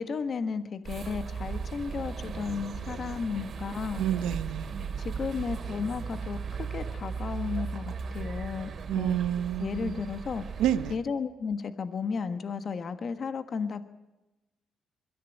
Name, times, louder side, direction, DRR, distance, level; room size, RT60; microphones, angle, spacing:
voice 1, 0.0-4.0 5.0-9.2 9.6-10.6 10.9-13.8, left 5 dB, 50° left, 1.4 m, -34 dB
sound 1, 0.8-11.0, right 5 dB, 50° right, 2.6 m, -37 dB
voice 2, 4.0-4.8 8.9-10.0 10.6-11.0, right 10 dB, 90° right, 0.9 m, -29 dB
22.0 x 14.5 x 9.0 m
cardioid pair, 90°, 0 cm